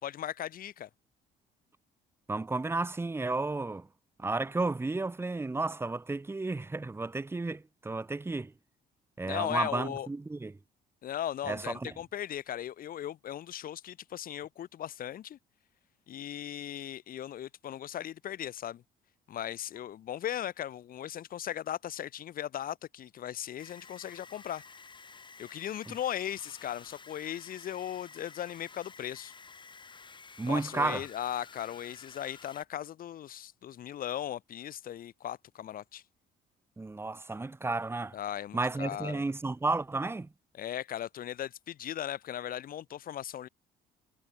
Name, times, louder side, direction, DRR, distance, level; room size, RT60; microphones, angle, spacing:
voice 1, 0.0-0.9 9.2-10.1 11.0-15.4 16.1-18.8 19.3-24.6 25.4-29.3 30.4-36.0 38.1-39.2 40.6-43.5, left 11 dB, 60° left, 4.4 m, -38 dB
voice 2, 2.3-3.9 4.2-8.5 9.2-10.6 11.5-11.9 25.9-26.0 30.4-31.1 36.8-38.2 38.5-40.3, right 3 dB, 15° right, 1.5 m, -32 dB
sound 1, 23.6-32.6, left 5 dB, 30° left, 6.6 m, -52 dB
cardioid pair, 110°, 17 cm